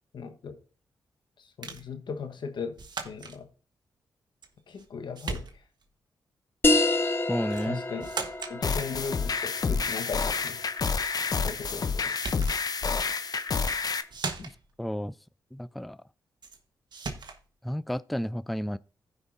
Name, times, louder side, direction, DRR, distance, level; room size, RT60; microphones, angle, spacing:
voice 1, 0.1-0.6 1.6-2.8 3.0-3.5 4.7-5.5 7.6-8.1 8.5-10.6 11.4-12.1, left 5 dB, 65° left, 1.2 m, -37 dB
sound 1, 1.6-1.9 2.8-3.4 4.4-4.9 5.2-5.9 7.5-7.7 8.0-8.6 11.7-11.8 12.1-12.6 13.5-13.8 14.1-14.7 16.4-16.6 16.9-17.4, right 4 dB, 60° right, 1.3 m, -37 dB
sound 2, 6.6-11.7, left 2 dB, 25° left, 1.1 m, -29 dB
voice 2, 7.3-7.8 14.4-14.5 14.8-15.1 15.5-16.0 17.6-18.8, equal, ahead, 0.3 m, -31 dB
sound 3, 8.6-14.0, left 5 dB, 50° left, 0.7 m, -29 dB
15.0 x 5.4 x 2.6 m
supercardioid pair, 45°, 8 cm